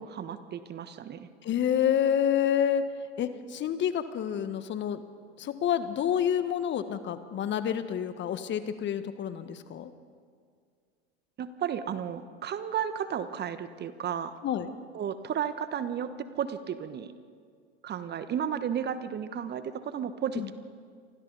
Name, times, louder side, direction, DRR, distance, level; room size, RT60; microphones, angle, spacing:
voice 1, 0.0-1.3 11.4-14.3 14.9-16.1 16.4-17.1 17.8-20.5, right 8 dB, 30° right, 11 dB, 1.2 m, -33 dB
voice 2, 1.4-2.8 3.2-5.0 5.4-9.9 14.4-14.7 20.3-20.5, left 9 dB, 35° left, 11 dB, 1.4 m, -28 dB
29.5 x 25.0 x 4.1 m, 2.1 s
hypercardioid pair, 85°, 33 cm